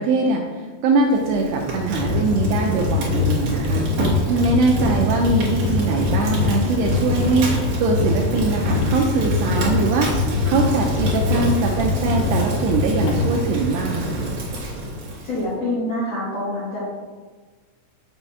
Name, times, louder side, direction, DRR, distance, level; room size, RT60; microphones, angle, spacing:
voice 1, 0.0-3.9 4.3-14.2, right 3 dB, 85° right, 0 dB, 2.4 m, -22 dB
Fire, 1.1-15.5, right 1 dB, 65° right, 1.8 m, -28 dB
sound 1, 1.8-13.5, left 4 dB, 80° left, 2.2 m, -24 dB
voice 2, 15.2-16.8, left 1 dB, 60° left, -10 dB, 1.8 m, -26 dB
7.0 x 6.2 x 2.7 m, 1.4 s
omnidirectional pair, 5.1 m